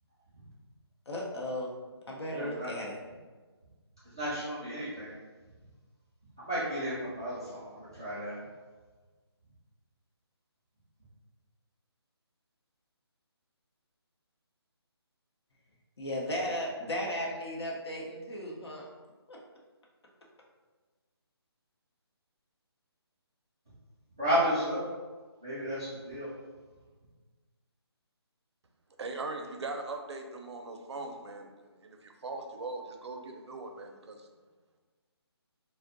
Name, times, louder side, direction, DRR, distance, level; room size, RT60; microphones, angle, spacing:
voice 1, 1.1-1.7 2.1-3.0 16.0-18.9 19.3-19.4, equal, 75° left, -2 dB, 0.7 m, -35 dB
voice 2, 2.3-2.7 4.1-5.1 6.4-8.3 24.2-24.8 25.4-26.3, equal, 10° right, -15 dB, 0.3 m, -32 dB
voice 3, 29.0-34.3, right 3 dB, 85° right, 4 dB, 0.4 m, -40 dB
2.5 x 2.1 x 2.4 m, 1.3 s
hypercardioid pair, 170°, 14 cm